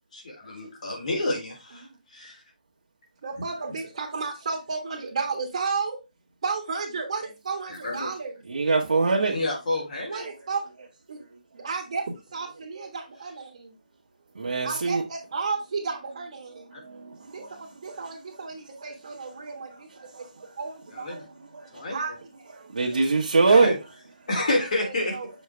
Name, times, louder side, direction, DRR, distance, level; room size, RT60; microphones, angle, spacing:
voice 1, 0.1-1.8 2.1-2.4 7.7-8.1 9.2-10.2 20.9-21.3 21.7-22.0 23.5-23.7 24.3-25.2, left 2 dB, 55° left, 3.0 m, -29 dB
voice 2, 3.2-6.0 6.4-8.4 10.1-11.2 11.5-13.7 14.4-16.7 17.3-19.9 20.1-20.3 20.6-21.1 21.9-22.1 22.4-22.8 24.8-25.3, right 4 dB, 45° right, 1.5 m, -33 dB
voice 3, 8.5-9.3 14.3-15.0 16.7-17.6 17.9-18.0 20.0-20.2 21.1-21.3 21.5-21.9 22.7-23.7, right 4 dB, 75° right, 1.3 m, -23 dB
6.4 x 4.6 x 3.3 m
hypercardioid pair, 170°, 5 cm